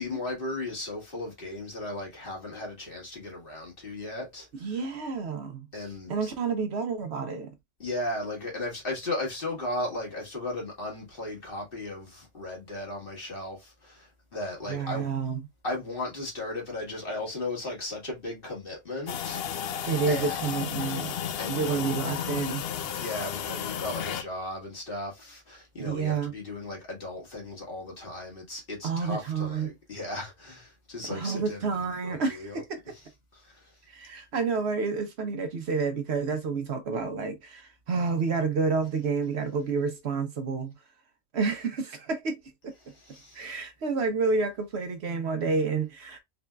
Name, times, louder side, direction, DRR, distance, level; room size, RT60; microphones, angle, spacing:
voice 1, 0.0-4.8 5.7-6.3 7.8-15.1 15.6-19.8 20.1-20.4 21.4-21.9 23.0-31.7 32.0-32.6 33.3-33.8 42.8-43.6, left 2 dB, 50° left, 1.9 m, -36 dB
voice 2, 4.6-5.7 6.1-7.5 14.7-15.5 19.8-21.1 21.5-22.6 25.8-26.3 28.8-29.7 31.1-32.6 33.9-40.7 41.3-42.4 43.3-46.2, right 4 dB, 65° right, 1.0 m, -29 dB
sound 1, 19.1-24.2, left 8 dB, 65° left, 0.7 m, -33 dB
3.8 x 3.5 x 2.2 m
omnidirectional pair, 1.2 m